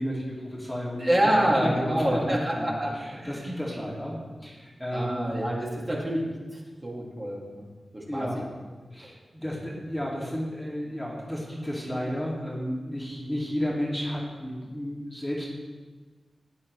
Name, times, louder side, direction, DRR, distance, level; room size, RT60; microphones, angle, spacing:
voice 1, 0.0-1.3 1.6-5.3 8.1-8.5 8.9-15.5, equal, 10° left, -5 dB, 2.2 m, -32 dB
voice 2, 1.0-3.6 4.9-7.6 7.9-8.3 9.0-9.1 9.4-9.5, right 1 dB, 25° right, -4 dB, 2.3 m, -27 dB
15.5 x 9.8 x 3.2 m, 1.3 s
wide cardioid pair, 130°, 0 cm